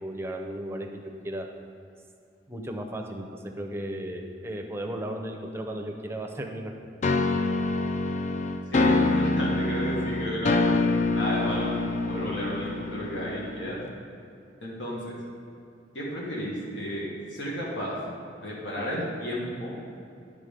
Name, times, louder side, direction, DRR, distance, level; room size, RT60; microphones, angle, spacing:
voice 1, 0.0-1.5 2.5-3.3 3.6-6.7, right 1 dB, 15° right, 2 dB, 0.6 m, -35 dB
sound 1, 7.0-13.9, left 3 dB, 40° left, 0.3 m, -26 dB
voice 2, 8.7-10.6 11.1-13.8 14.6-15.2 15.9-17.9 18.4-19.7, equal, 90° left, -5 dB, 1.6 m, -32 dB
10.0 x 3.9 x 5.1 m, 2.5 s
head